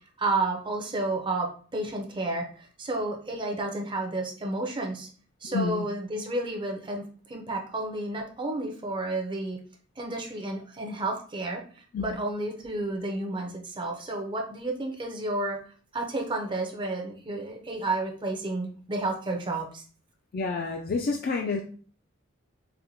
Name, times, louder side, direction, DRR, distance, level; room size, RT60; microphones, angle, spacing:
voice 1, 0.2-5.1 5.4-9.6 10.0-15.6 15.9-19.8, right 2 dB, 25° right, 2 dB, 0.5 m, -31 dB
voice 2, 5.4-5.9 11.9-12.2 20.3-21.6, left 4 dB, 45° left, 2 dB, 0.3 m, -29 dB
4.2 x 2.1 x 2.6 m, 0.42 s
head